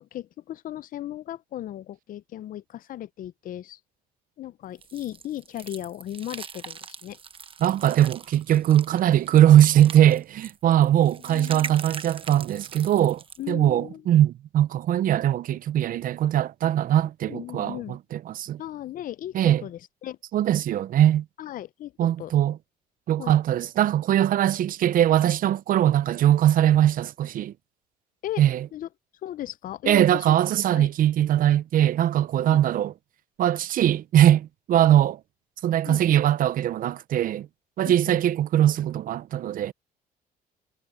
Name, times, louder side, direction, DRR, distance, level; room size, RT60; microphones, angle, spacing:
voice 1, 0.0-3.8 4.4-7.2 11.2-11.8 13.4-14.0 17.3-18.0 18.6-20.2 21.4-21.9 22.2-22.3 23.2-23.4 28.2-28.4 28.7-28.9 29.2-30.4 30.7-30.9 32.4-32.6 35.8-36.0 37.8-38.2, left 13 dB, 55° left, 0.6 m, -36 dB
sound 1, 4.8-13.5, right 6 dB, 30° right, 1.1 m, -41 dB
voice 2, 7.6-18.6 19.3-19.6 20.3-21.2 22.0-22.6 23.1-27.5 28.4-28.7 29.9-32.9 33.4-35.2 35.6-37.5 37.8-39.7, right 11 dB, 55° right, 0.6 m, -21 dB
cardioid pair, 110°, 17 cm